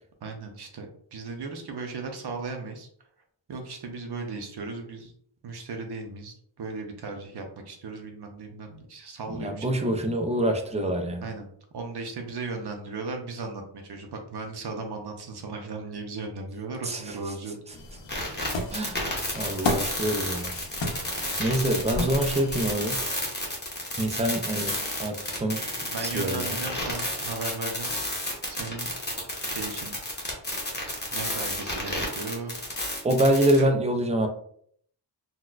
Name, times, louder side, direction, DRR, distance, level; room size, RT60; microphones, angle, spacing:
voice 1, 0.2-2.9 3.5-5.1 5.4-9.9 11.2-11.5 11.7-17.6 25.8-28.9 29.4-30.0 31.1-32.9 33.6-33.7, right 3 dB, 60° right, 4 dB, 0.7 m, -36 dB
voice 2, 9.3-11.3 16.8-17.1 18.7-19.1 19.3-20.5 21.4-23.0 24.0-26.6 33.0-34.3, right 1 dB, 15° right, 4 dB, 0.3 m, -26 dB
sound 1, 17.7-22.7, left 2 dB, 70° left, 0.8 m, -33 dB
sound 2, 18.1-33.7, left 1 dB, 20° left, 0.8 m, -31 dB
4.0 x 2.2 x 2.4 m, 0.63 s
wide cardioid pair, 135°, 46 cm